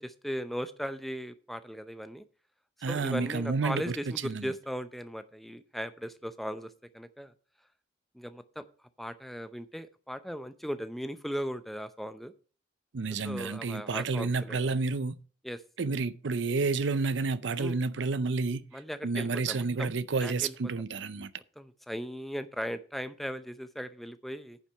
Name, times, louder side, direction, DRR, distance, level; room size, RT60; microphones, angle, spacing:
voice 1, 0.0-2.2 2.9-7.3 8.1-8.6 9.0-12.3 13.2-14.6 15.4-15.6 17.6-17.8 18.7-19.9 20.2-20.5 21.6-24.6, equal, ahead, 0.6 m, -38 dB
voice 2, 2.8-4.0 4.2-4.5 12.9-15.2 15.8-18.6 19.0-21.3, right 4 dB, 75° right, 0.6 m, -30 dB
9.6 x 7.3 x 4.6 m
head